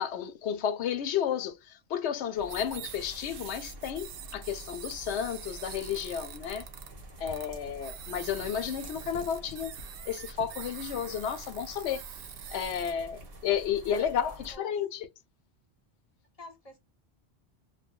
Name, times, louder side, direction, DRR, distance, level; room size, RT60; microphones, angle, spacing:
voice 1, 0.0-6.6 7.2-9.7 10.1-12.1 12.5-15.1, left 8 dB, 80° left, 0.9 m, -32 dB
sound 1, 2.3-14.6, right 1 dB, 60° right, 1.1 m, -47 dB
sound 2, 2.5-6.9 7.3-7.5 7.8-12.9, right 9 dB, 85° right, 0.9 m, -45 dB
voice 2, 13.9-14.7 16.4-16.8, left 1 dB, 35° left, 1.0 m, -49 dB
2.8 x 2.4 x 3.6 m
omnidirectional pair, 1.1 m